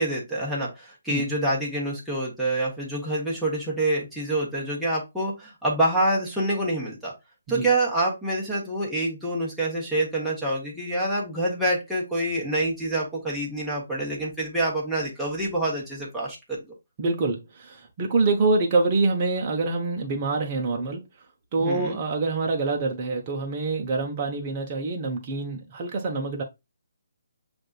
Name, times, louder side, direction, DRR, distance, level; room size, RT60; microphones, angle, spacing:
voice 1, 0.0-7.1 7.5-16.6 21.6-22.0, right 1 dB, ahead, 1.2 m, -26 dB
voice 2, 17.0-21.0 21.5-26.4, right 3 dB, 30° right, 0.8 m, -25 dB
7.5 x 2.6 x 2.4 m
figure-of-eight pair, 140°, 0 cm